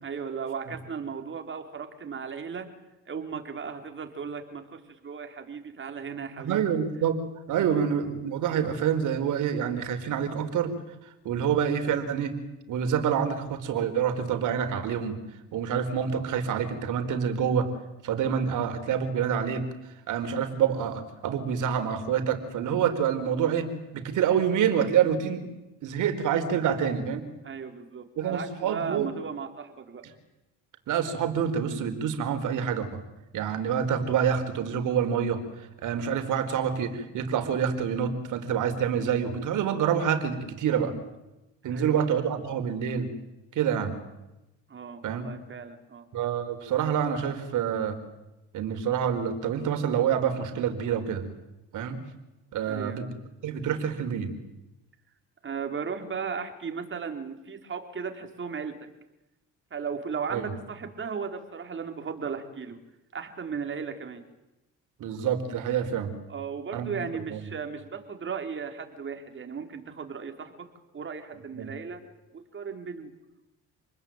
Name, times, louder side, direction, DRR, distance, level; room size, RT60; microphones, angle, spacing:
voice 1, 0.0-2.7 3.1-6.8 7.5-7.7 27.4-30.0 41.7-42.0 44.7-46.0 52.7-53.0 55.4-58.7 59.7-62.8 63.1-64.2 66.3-70.5 70.9-72.0 72.3-73.1, right 6 dB, 35° right, 5 dB, 4.6 m, -36 dB
voice 2, 6.4-7.2 7.5-10.7 11.2-12.3 12.7-15.2 15.5-17.7 18.0-19.6 20.1-23.7 23.9-25.4 25.8-27.2 28.2-29.1 30.9-33.0 33.3-35.4 35.8-40.9 41.6-43.1 43.5-43.9 45.0-45.3 46.1-48.0 48.5-51.2 51.7-52.0 52.5-53.0 53.4-54.3 60.3-60.5 65.0-66.1 66.7-67.0 67.3-67.4 71.6-71.7, right 8 dB, 65° right, 9 dB, 4.5 m, -27 dB
28.5 x 20.5 x 9.3 m, 0.97 s
cardioid pair, 100°, 33 cm